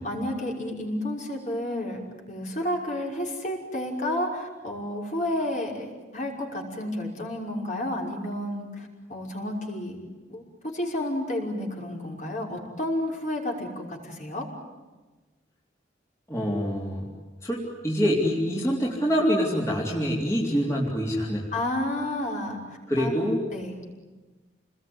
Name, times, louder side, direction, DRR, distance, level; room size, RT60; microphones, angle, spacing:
voice 1, 0.0-2.0 2.3-5.9 6.1-10.0 10.3-10.4 10.7-14.5 21.5-23.1 23.5-23.8, left 1 dB, 45° left, -1 dB, 5.8 m, -31 dB
voice 2, 16.3-17.1 17.4-21.4 22.9-23.4, equal, 15° left, -4 dB, 3.6 m, -25 dB
29.0 x 21.0 x 9.7 m, 1.2 s
head